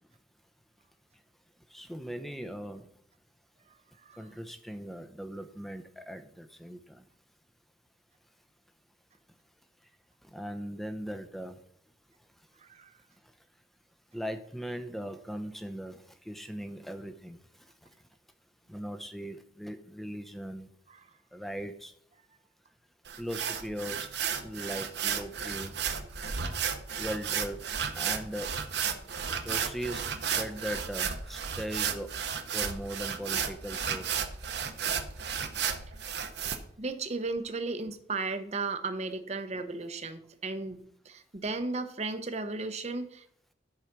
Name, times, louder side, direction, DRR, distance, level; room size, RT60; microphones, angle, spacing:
voice 1, 1.7-2.9 4.2-7.1 10.2-11.6 14.1-17.4 18.7-20.7 21.3-21.9 23.2-25.8 27.0-27.7 27.9-28.5 29.4-32.1 32.5-34.1, equal, ahead, 9 dB, 0.7 m, -39 dB
sound 1, 23.1-36.6, right 7 dB, 60° right, 1.0 m, -33 dB
voice 2, 36.8-40.8 41.1-43.2, right 3 dB, 35° right, 9 dB, 0.8 m, -35 dB
12.0 x 4.9 x 5.9 m, 0.66 s
head